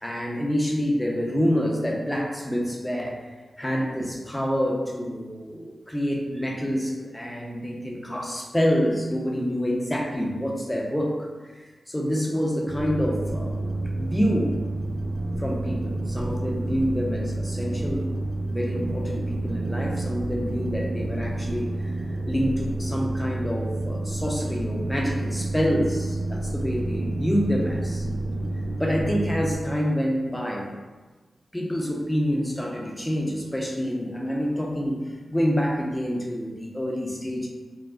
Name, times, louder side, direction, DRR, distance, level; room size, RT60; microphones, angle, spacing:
voice 1, 0.0-3.1 3.6-11.1 11.4-13.6 14.0-14.6 15.4-18.1 18.5-28.1 28.8-30.7 31.5-37.5, equal, 10° left, -2 dB, 0.5 m, -27 dB
sound 1, 12.7-29.6, right 2 dB, 45° right, 0.5 m, -29 dB
3.3 x 2.0 x 2.4 m, 1.3 s
cardioid pair, 60°, 0 cm